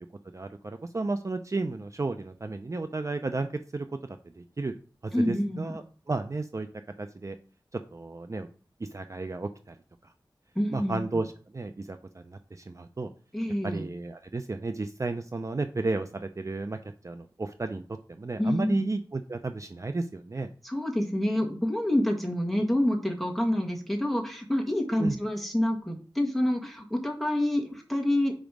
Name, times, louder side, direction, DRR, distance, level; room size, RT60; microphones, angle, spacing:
voice 1, 0.3-4.8 5.0-6.7 7.0-7.4 7.7-8.5 8.8-9.8 10.0-10.1 10.7-13.1 13.6-17.8 18.1-20.5 25.0-25.2, right 3 dB, 40° right, 8 dB, 0.5 m, -33 dB
voice 2, 5.1-5.8 10.5-11.0 13.3-13.8 18.4-18.8 20.6-28.3, left 1 dB, ahead, 1 dB, 1.7 m, -27 dB
5.2 x 5.0 x 6.1 m, 0.40 s
wide cardioid pair, 75°, 9 cm